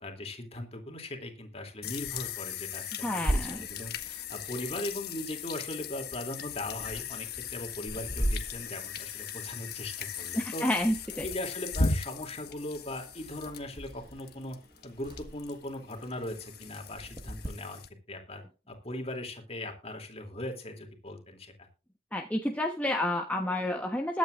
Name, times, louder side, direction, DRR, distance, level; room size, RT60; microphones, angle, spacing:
voice 1, 0.0-10.7 11.2-14.6 14.8-17.8 18.1-21.5, left 1 dB, 30° left, 4 dB, 2.9 m, -39 dB
sound 1, 1.8-17.9, left 5 dB, 55° left, 1.5 m, -38 dB
voice 2, 3.0-3.7 10.3-11.3 22.1-24.2, left 1 dB, 10° left, 1 dB, 1.1 m, -30 dB
sound 2, 3.3-17.5, right 1 dB, 25° right, 1.4 m, -40 dB
21.5 x 9.2 x 2.5 m, 0.32 s
head